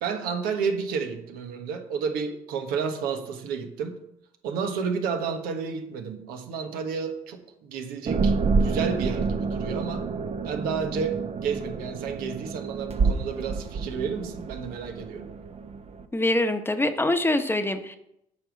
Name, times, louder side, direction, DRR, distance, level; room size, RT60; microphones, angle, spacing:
voice 1, 0.0-4.0 4.4-10.1 10.4-15.3, right 6 dB, 80° right, 1.3 m, -31 dB
sound 1, 8.1-16.0, right 4 dB, 45° right, 0.9 m, -28 dB
voice 2, 16.1-18.0, left 1 dB, 15° left, 1.0 m, -24 dB
8.5 x 5.3 x 6.4 m
supercardioid pair, 70°, 15 cm